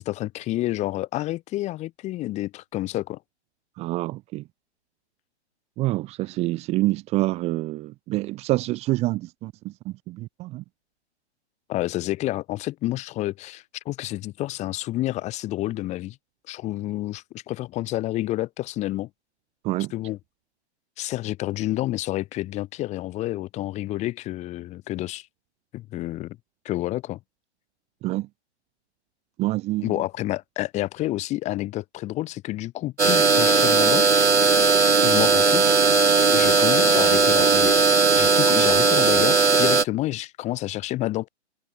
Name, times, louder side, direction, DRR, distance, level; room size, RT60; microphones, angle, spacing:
voice 1, 0.0-3.2 11.7-16.2 16.5-19.1 19.9-20.2 21.0-25.3 25.7-26.4 26.6-27.2 29.8-34.1 35.0-35.6 36.3-41.3, left 16 dB, 20° left, 6.2 m, -29 dB
voice 2, 3.8-4.4 5.8-10.6 19.6-19.9 28.0-28.3 29.4-29.9, right 18 dB, 20° right, 2.1 m, -27 dB
sound 1, 33.0-39.8, right 4 dB, 80° right, 2.0 m, -18 dB
figure-of-eight pair, 130°, 35 cm